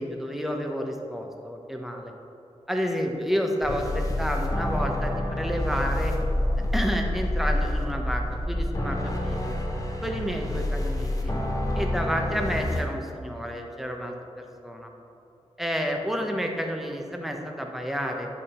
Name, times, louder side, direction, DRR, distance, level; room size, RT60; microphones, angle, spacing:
voice 1, 0.0-2.1 2.7-6.1 6.7-9.6 10.0-11.3 11.8-14.1 14.6-14.9 15.6-18.3, equal, ahead, 2 dB, 1.1 m, -30 dB
sound 1, 3.6-12.8, left 1 dB, 30° left, 1.2 m, -28 dB
10.5 x 3.8 x 4.5 m, 2.8 s
cardioid pair, 50°, 12 cm